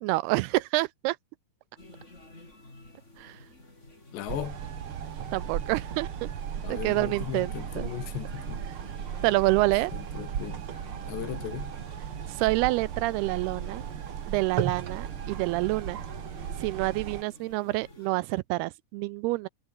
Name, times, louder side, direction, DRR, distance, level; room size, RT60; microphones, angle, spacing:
voice 1, 0.0-1.2 3.2-3.4 5.3-6.3 6.7-7.9 9.2-9.9 12.3-13.8 14.3-16.0 16.6-19.5, right 21 dB, 85° right, 2.4 m, -27 dB
sound 1, 1.8-18.1, left 2 dB, 15° left, 5.8 m, -50 dB
voice 2, 4.1-4.6 6.6-8.7 9.6-10.6 11.1-11.8, left 12 dB, 90° left, 4.2 m, -37 dB
sound 2, 4.3-17.2, right 9 dB, 65° right, 1.3 m, -36 dB
omnidirectional pair, 4.8 m